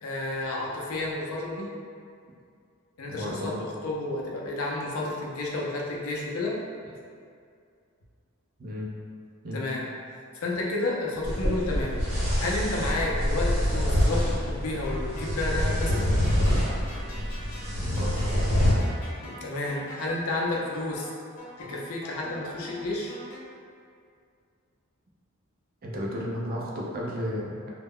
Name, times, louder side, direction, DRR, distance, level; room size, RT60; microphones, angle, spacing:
voice 1, 0.0-1.7 3.0-6.6 9.5-9.9 10.3-11.9 12.4-16.2 19.2-21.1 21.6-23.1, left 2 dB, 70° left, -3 dB, 0.5 m, -31 dB
voice 2, 3.1-3.6 8.6-8.9 9.4-9.6 17.8-18.2 25.8-27.7, equal, 45° right, -4 dB, 0.4 m, -33 dB
sound 1, 11.2-18.7, equal, 75° right, 1.0 m, -26 dB
sound 2, 14.8-23.4, equal, 40° left, 0.8 m, -44 dB
2.2 x 2.1 x 3.4 m, 2.3 s
head